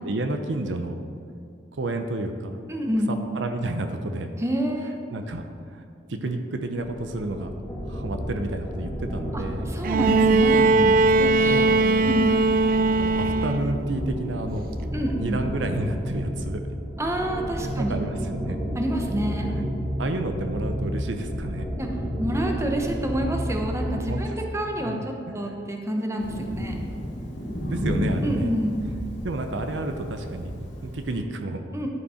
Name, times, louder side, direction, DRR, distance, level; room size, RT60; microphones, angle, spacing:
voice 1, 0.0-1.0 1.7-2.5 3.1-4.3 5.1-7.5 7.9-9.7 10.6-11.1 11.5-12.1 13.0-14.7 15.1-16.6 17.6-18.7 19.5-21.7 24.1-24.4 24.8-25.6 27.6-28.5 29.2-31.9, right 2 dB, 80° right, 6 dB, 0.7 m, -31 dB
voice 2, 2.7-3.2 4.4-5.0 9.3-10.7 11.2-11.7 12.0-12.3 14.9-15.4 17.0-18.0 18.7-19.5 21.8-21.9 22.2-26.8 28.2-28.9 31.7-31.9, right 1 dB, 15° right, 2 dB, 0.9 m, -28 dB
sound 1, 6.8-24.2, equal, ahead, 2.0 m, -31 dB
Bowed string instrument, 9.8-13.9 15.1-15.2, right 3 dB, 50° right, 0.4 m, -20 dB
Thunder, 26.2-31.2, equal, 70° left, 2.0 m, -32 dB
11.0 x 5.3 x 5.0 m, 2.4 s
head